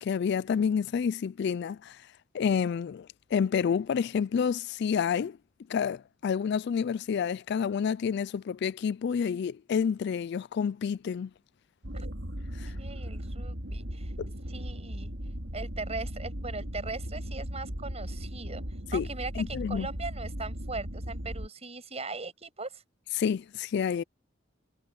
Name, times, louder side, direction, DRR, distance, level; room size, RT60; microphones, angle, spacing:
voice 1, 0.0-2.0 2.3-5.4 5.7-11.3 12.6-12.7 14.2-14.3 18.9-19.1 19.4-19.9 23.2-24.0, left 7 dB, 60° left, 0.3 m, -29 dB
sound 1, 11.8-21.5, equal, 80° right, 3.9 m, -37 dB
voice 2, 12.8-14.1 14.5-15.1 15.5-18.6 18.9-22.8, right 3 dB, 35° right, 6.6 m, -39 dB
head